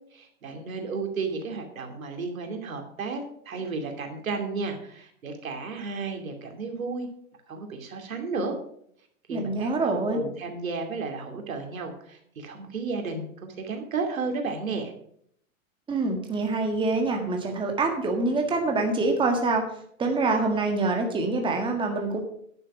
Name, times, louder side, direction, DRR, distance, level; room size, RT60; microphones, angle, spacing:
voice 1, 0.1-7.1 7.5-8.5 9.3-14.9, right 4 dB, 85° right, 4 dB, 2.7 m, -33 dB
voice 2, 9.3-10.2 15.9-19.6 20.0-22.2, right 3 dB, 10° right, 3 dB, 1.7 m, -25 dB
10.5 x 6.6 x 6.0 m, 0.67 s
hypercardioid pair, 125°, 40 cm